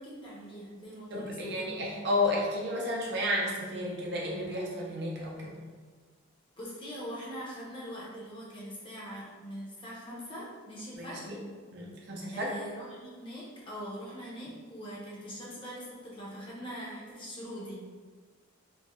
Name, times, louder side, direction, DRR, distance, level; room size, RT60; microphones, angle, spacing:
voice 1, 0.0-1.8 6.6-11.4 12.3-17.8, equal, 25° left, -6 dB, 0.6 m, -42 dB
voice 2, 1.1-5.6 11.0-11.4 11.7-12.6, left 1 dB, 50° right, -3 dB, 0.5 m, -32 dB
3.0 x 2.6 x 2.2 m, 1.5 s
head